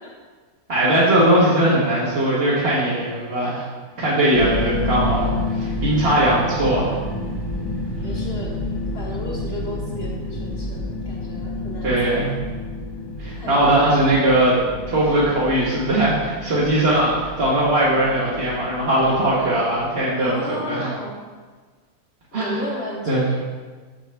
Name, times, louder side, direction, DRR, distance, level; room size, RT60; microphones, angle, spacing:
voice 1, 0.7-3.6 4.0-5.3 5.5-6.9 11.8-12.3 13.2-14.6 14.9-20.9 22.3-22.6 23.1-23.2, right 1 dB, 45° right, -9 dB, 1.5 m, -19 dB
sound 1, 4.3-20.2, left 2 dB, 65° left, 2.0 m, -29 dB
voice 2, 4.3-4.7 8.0-8.6 8.9-12.3 13.4-14.0 20.2-21.2 22.3-23.4, left 1 dB, 40° left, -3 dB, 1.6 m, -34 dB
7.6 x 6.4 x 3.4 m, 1.4 s
omnidirectional pair, 1.6 m